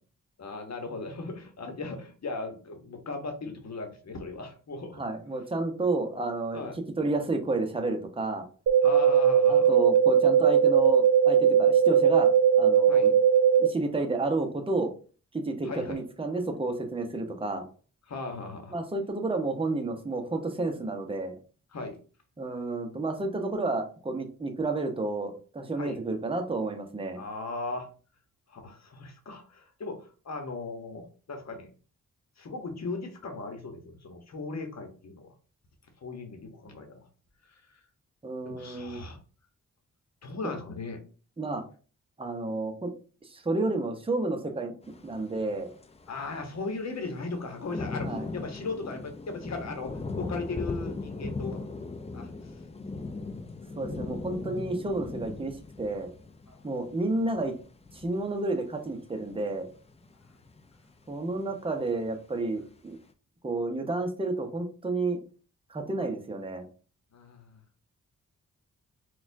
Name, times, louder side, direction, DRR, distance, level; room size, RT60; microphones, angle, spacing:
voice 1, 0.4-5.0 6.5-6.8 8.8-9.8 12.9-13.1 15.6-16.0 18.1-18.7 21.7-22.0 25.8-26.0 27.1-27.9 28.5-31.7 32.4-35.3 36.0-37.0 37.5-37.8 38.4-39.2 40.2-41.0 46.1-51.7 52.1-52.3 56.5-56.6 67.1-67.6, left 3 dB, 50° left, 5 dB, 1.0 m, -37 dB
voice 2, 5.0-6.7 7.0-8.5 9.5-13.1 13.6-14.9 15.3-17.6 18.7-21.3 22.4-27.2 38.2-39.0 40.4-40.5 41.4-41.6 42.2-42.9 43.2-44.7 45.0-45.7 48.0-48.2 53.8-56.1 56.6-57.6 57.9-59.7 61.1-63.0 63.4-65.2 65.7-66.7, right 2 dB, 15° right, 4 dB, 0.8 m, -31 dB
sound 1, 8.7-13.7, right 8 dB, 55° right, 0.5 m, -20 dB
sound 2, 44.8-61.5 61.9-62.4, left 3 dB, 20° left, 0.4 m, -39 dB
4.0 x 2.4 x 2.6 m, 0.38 s
cardioid pair, 50°, 33 cm